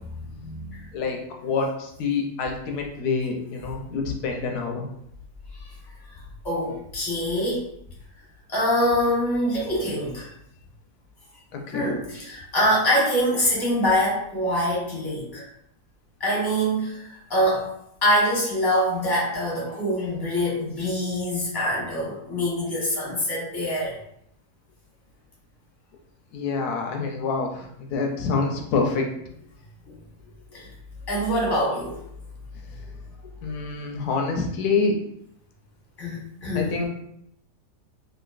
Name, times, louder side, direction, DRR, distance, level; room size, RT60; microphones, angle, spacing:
voice 1, 0.3-0.9 6.4-7.7 8.5-10.3 11.7-15.5 16.2-17.7 18.0-24.0 30.5-30.7 31.1-32.0 36.0-36.7, equal, 15° left, -6 dB, 1.0 m, -24 dB
voice 2, 0.9-4.9 11.5-11.9 26.3-29.1 33.2-35.0 36.5-36.9, left 4 dB, 75° left, 2 dB, 1.0 m, -27 dB
3.0 x 2.7 x 2.4 m, 0.72 s
omnidirectional pair, 1.7 m